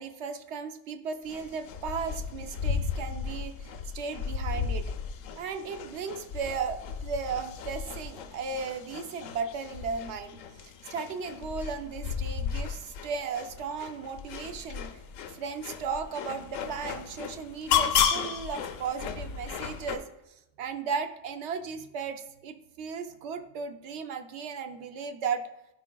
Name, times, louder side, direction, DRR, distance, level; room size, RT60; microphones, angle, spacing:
voice 1, 0.0-4.9 5.4-14.9 15.3-25.5, right 5 dB, 70° right, 8 dB, 0.8 m, -36 dB
sound 1, 1.3-20.0, left 7 dB, 90° left, 1.0 m, -34 dB
11.0 x 4.8 x 2.2 m, 0.91 s
omnidirectional pair, 1.3 m